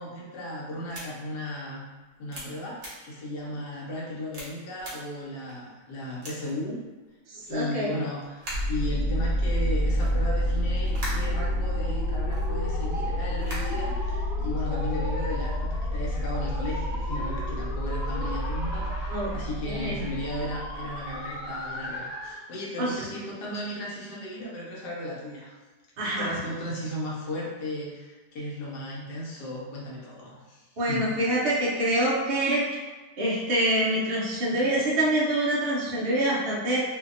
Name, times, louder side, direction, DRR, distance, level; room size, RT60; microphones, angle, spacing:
voice 1, 0.0-1.8 2.2-6.8 7.4-25.5 26.2-31.1, left 1 dB, 80° left, -4 dB, 1.2 m, -35 dB
sound 1, 0.9-1.0 1.6-1.7 2.3-2.4 2.8-2.9 3.5-3.6 4.3-4.5 4.8-4.9 5.5-5.6 6.2-6.5 7.4-7.6 8.2-8.7 9.5-11.8 12.2-12.5 13.2-13.9, right 1 dB, 50° right, 0.8 m, -39 dB
voice 2, 7.3-7.9 19.1-19.3 19.7-20.0 22.8-22.9 26.0-26.3 30.8-32.6 33.2-36.8, right 1 dB, 80° right, -6 dB, 0.5 m, -25 dB
sound 2, 8.5-21.2, equal, 60° left, 1.1 m, -29 dB
sound 3, 9.7-22.4, equal, 30° left, 1.0 m, -39 dB
2.7 x 2.6 x 2.4 m, 1.3 s
omnidirectional pair, 1.8 m